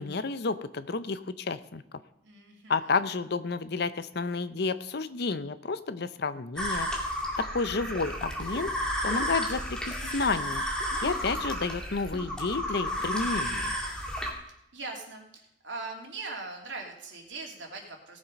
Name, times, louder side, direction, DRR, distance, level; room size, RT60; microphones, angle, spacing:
voice 1, 0.0-1.8 2.7-6.9 7.4-8.7 9.0-10.6 11.0-13.7, left 4 dB, 65° left, 13 dB, 0.7 m, -31 dB
voice 2, 2.2-3.0 14.5-18.2, right 3 dB, 90° right, 1 dB, 2.7 m, -41 dB
sound 1, 6.6-14.3, equal, 5° left, 2.2 m, -32 dB
17.5 x 7.4 x 5.3 m, 0.79 s
head